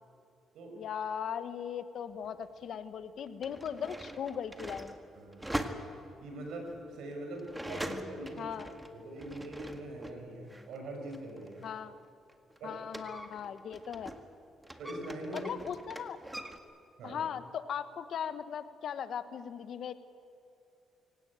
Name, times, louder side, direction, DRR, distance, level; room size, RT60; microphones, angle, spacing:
voice 1, 0.7-5.0 8.4-8.7 11.6-12.0 12.6-14.1 15.3-16.2 17.0-19.9, left 8 dB, 65° left, 12 dB, 1.2 m, -38 dB
sound 1, 2.2-2.3 3.2-10.2 10.5-14.3 14.6-16.6, right 1 dB, 10° right, 1.9 m, -42 dB
voice 2, 5.1-5.6 6.2-8.5 8.8-11.6 12.6-12.8 14.8-15.5 17.0-17.2, right 1 dB, 75° right, 2 dB, 6.7 m, -42 dB
24.0 x 17.0 x 9.0 m, 2.6 s
cardioid pair, 90°, 0 cm